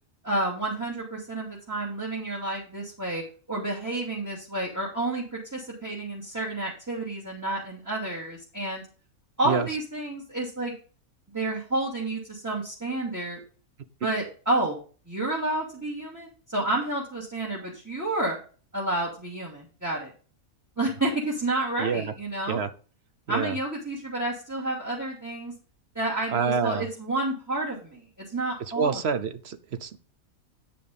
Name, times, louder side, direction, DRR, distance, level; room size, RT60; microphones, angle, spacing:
voice 1, 0.2-3.2 3.5-8.8 9.4-10.7 11.3-13.4 14.0-14.8 15.1-18.4 18.7-20.1 20.8-22.6 23.3-25.5 25.9-29.0, right 2 dB, 10° right, -3 dB, 2.5 m, -30 dB
voice 2, 21.8-22.1 22.5-22.7 23.3-23.6 26.3-26.8 28.8-30.0, right 6 dB, 50° right, 11 dB, 1.0 m, -27 dB
9.4 x 5.1 x 5.4 m, 0.38 s
omnidirectional pair, 1.5 m